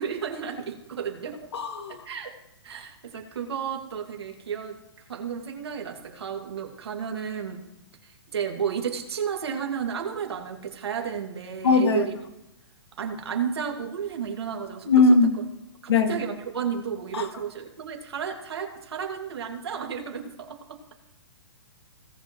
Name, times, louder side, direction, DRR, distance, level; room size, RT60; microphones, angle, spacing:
voice 1, 0.0-1.5 1.9-2.3 2.6-4.8 5.1-7.6 8.0-12.1 13.0-14.9 15.8-20.9, right 7 dB, 75° right, 3 dB, 2.0 m, -32 dB
voice 2, 1.5-2.0 11.6-12.0 14.9-15.3 15.9-16.2 17.1-17.3, left 3 dB, 80° left, 4 dB, 1.8 m, -20 dB
18.0 x 6.8 x 2.9 m, 0.86 s
hypercardioid pair, 175°, 13 cm